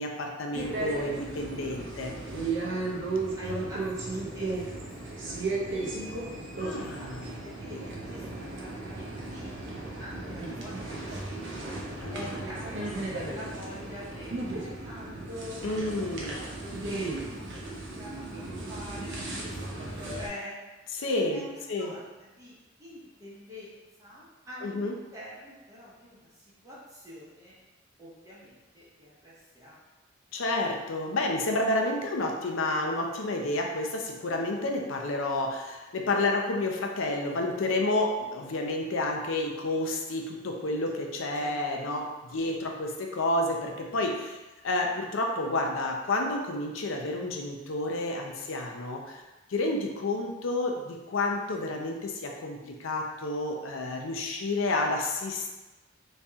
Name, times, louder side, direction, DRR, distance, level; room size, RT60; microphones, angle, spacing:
voice 1, 0.0-2.1 6.6-7.3 12.0-12.3 15.6-16.3 21.0-21.9 24.6-24.9 30.3-44.4 44.6-49.2 49.5-55.5, left 2 dB, 70° left, 1 dB, 0.6 m, -30 dB
sound 1, 0.5-20.3, right 2 dB, 60° right, 0.7 m, -35 dB
voice 2, 3.3-6.4 6.7-7.1 7.4-15.6 16.0-20.6 21.3-27.6 28.0-29.8 41.3-42.2, left 1 dB, 15° right, -8 dB, 0.8 m, -46 dB
3.1 x 2.8 x 3.4 m, 1.1 s
head